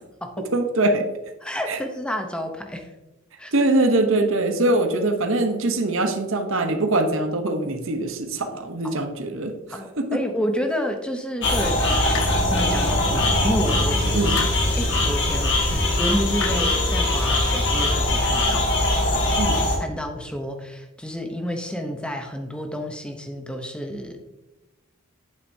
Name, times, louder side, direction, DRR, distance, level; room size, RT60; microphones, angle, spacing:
voice 1, 0.5-1.1 1.7-1.8 3.5-10.2 14.1-14.4 19.4-19.6, right 2 dB, 65° right, 6 dB, 0.9 m, -23 dB
voice 2, 1.4-2.9 3.4-3.7 8.8-9.0 9.7-14.2 14.6-18.6 19.8-24.2, equal, 5° left, 4 dB, 0.8 m, -30 dB
sound 1, 11.4-19.8, left 1 dB, 55° left, 1.9 m, -21 dB
sound 2, 12.1-12.7 14.3-14.7 16.4-16.5, left 7 dB, 75° left, 0.7 m, -32 dB
8.8 x 7.8 x 2.7 m, 1.0 s
head